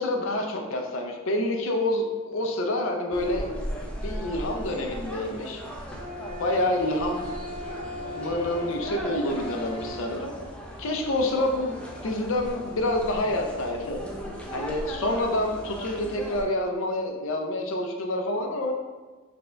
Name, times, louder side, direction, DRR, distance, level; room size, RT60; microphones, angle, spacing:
voice 1, 0.0-3.5 4.0-5.6 6.4-7.4 8.1-10.3 10.8-14.0 14.5-18.7, left 1 dB, 60° left, 3 dB, 0.5 m, -27 dB
sound 1, 3.1-16.4, equal, 5° left, 0.4 m, -37 dB
sound 2, 5.9-10.1, left 1 dB, 55° right, 1.0 m, -38 dB
4.3 x 2.8 x 3.2 m, 1.4 s
head